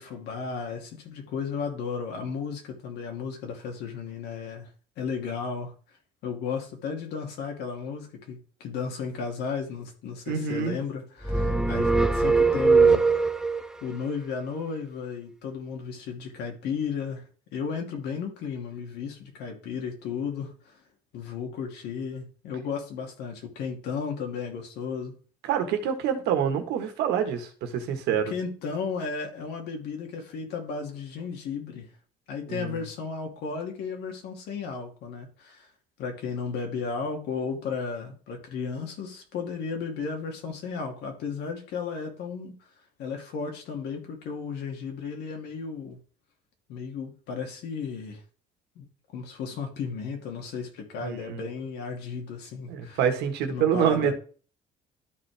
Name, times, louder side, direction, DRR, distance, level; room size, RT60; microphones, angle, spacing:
voice 1, 0.0-4.7 5.0-5.7 6.2-13.1 13.8-20.8 21.1-25.1 28.3-31.9 32.3-35.7 36.0-42.5 43.0-46.0 46.7-48.2 48.8-48.9 49.1-53.0 53.5-54.1, left 5 dB, 80° left, 2.5 m, -34 dB
voice 2, 10.3-10.8 25.5-28.3 32.5-32.8 51.0-51.4 52.7-54.1, right 8 dB, 85° right, 1.6 m, -26 dB
sound 1, 11.2-13.7, right 4 dB, 5° right, 0.6 m, -21 dB
12.5 x 4.5 x 3.5 m
cardioid pair, 110°, 17 cm